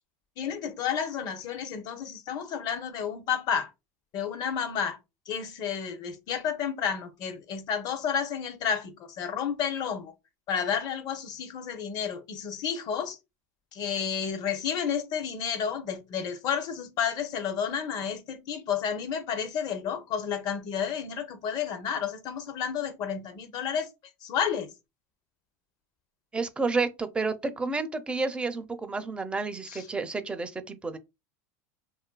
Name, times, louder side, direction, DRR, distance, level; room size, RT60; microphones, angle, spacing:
voice 1, 0.4-3.7 4.1-5.0 5.3-10.1 10.5-13.2 13.7-23.9 24.2-24.7 29.7-29.8, left 7 dB, 50° left, 0.6 m, -31 dB
voice 2, 26.3-31.0, right 3 dB, 10° right, 0.4 m, -30 dB
2.6 x 2.4 x 2.2 m
supercardioid pair, 110°, 9 cm